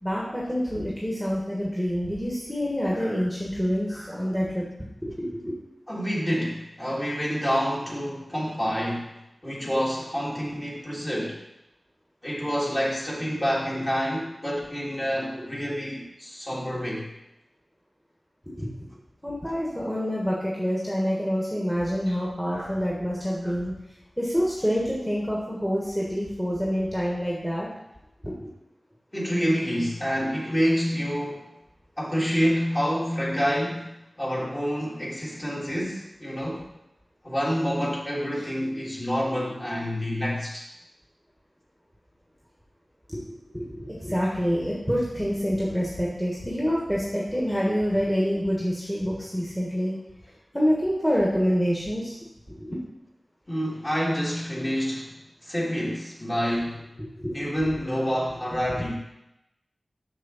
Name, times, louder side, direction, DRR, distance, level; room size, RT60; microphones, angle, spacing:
voice 1, 0.0-4.6 5.0-5.6 18.6-18.9 19.2-23.7 24.2-27.7 28.2-28.5 38.3-38.5 43.1-43.2 43.5-50.0 50.5-52.2 52.5-52.8 57.2-57.5, equal, 5° left, -4 dB, 1.5 m, -27 dB
voice 2, 5.9-9.1 9.4-11.4 12.2-17.1 22.5-22.7 23.4-23.5 29.1-31.5 32.0-36.7 37.2-40.7 53.5-55.2 55.4-56.8 57.3-59.0, equal, 25° left, -5 dB, 2.5 m, -28 dB
6.5 x 6.4 x 4.1 m, 0.89 s
wide cardioid pair, 55°, 0 cm